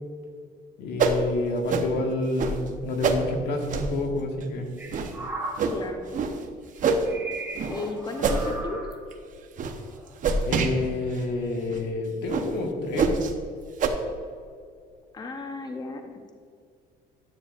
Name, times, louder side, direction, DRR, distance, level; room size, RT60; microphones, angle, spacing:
voice 1, 0.8-4.7 10.5-13.1, left 2 dB, 80° left, 2 dB, 1.5 m, -28 dB
sound 1, 1.0-1.2 1.7-1.9 2.4-2.5 3.0-3.2 3.7-3.9 4.4-4.5 4.9-5.1 5.6-5.7 6.1-6.3 6.8-7.1 7.5-7.7 8.2-8.5 8.9-9.1 9.6-9.7 10.2-10.7 11.2-11.3 11.7-11.8 12.3-12.5 13.0-13.3 13.8-13.9, right 5 dB, 50° right, 0.8 m, -25 dB
sound 2, 4.8-6.2 6.9-9.0 9.8-10.1, right 2 dB, 10° right, 2.0 m, -37 dB
voice 2, 5.7-6.1 7.7-8.8 15.1-16.3, left 3 dB, 25° left, 5 dB, 0.7 m, -35 dB
9.9 x 8.7 x 2.5 m, 2.3 s
cardioid pair, 110°, 17 cm